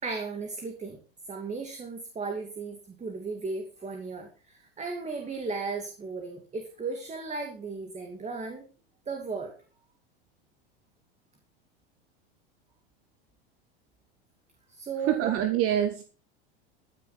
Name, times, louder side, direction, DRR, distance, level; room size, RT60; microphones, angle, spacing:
voice 1, 0.0-1.0 1.3-8.7 9.1-9.5 14.7-15.4, right 4 dB, 20° right, 4 dB, 2.5 m, -35 dB
voice 2, 15.1-16.0, right 11 dB, 50° right, 8 dB, 1.6 m, -25 dB
14.5 x 9.6 x 4.4 m, 0.35 s
hypercardioid pair, 95°, 30 cm